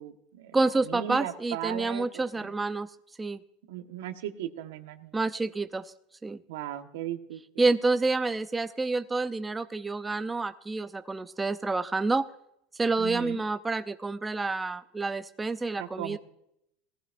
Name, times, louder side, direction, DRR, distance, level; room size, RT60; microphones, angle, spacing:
voice 1, 0.0-0.6 0.9-2.5 3.7-5.2 6.5-7.4 13.0-13.4 15.8-16.2, right 12 dB, 85° right, 7 dB, 1.3 m, -37 dB
voice 2, 0.5-2.9 3.2-3.4 5.1-5.9 6.2-6.4 7.6-12.3 12.7-16.2, right 3 dB, 10° right, 11 dB, 0.5 m, -28 dB
17.5 x 15.0 x 2.6 m, 0.77 s
supercardioid pair, 140°, 0 cm